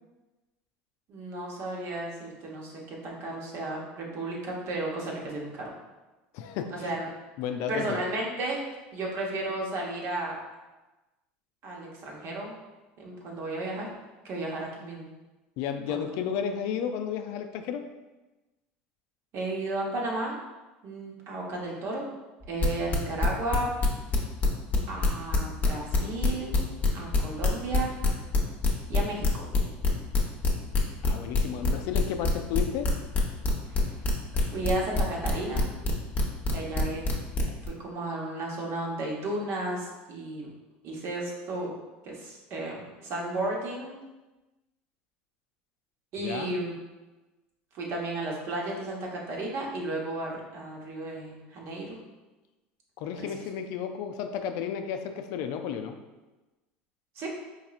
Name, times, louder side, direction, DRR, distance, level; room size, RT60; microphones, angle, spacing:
voice 1, 1.1-5.7 6.7-7.1 7.7-10.4 11.6-12.5 13.0-13.9 14.2-15.1 15.9-16.0 19.3-20.4 20.8-22.1 22.5-23.8 24.9-26.6 26.9-28.0 28.9-29.4 33.6-33.9 34.3-35.6 36.5-37.1 37.7-40.5 40.8-41.7 42.0-44.0 46.1-46.7 47.7-52.0 53.2-53.3 57.1-57.3, right 2 dB, 55° right, -2 dB, 1.0 m, -33 dB
voice 2, 6.3-7.0 7.4-8.0 15.6-17.9 31.0-32.9 46.2-46.5 53.0-56.0, left 8 dB, 65° left, 7 dB, 0.3 m, -33 dB
sound 1, 22.4-24.8 25.0-37.7, left 3 dB, 30° left, 0.8 m, -24 dB
4.4 x 2.9 x 2.4 m, 1.1 s
supercardioid pair, 95°, 5 cm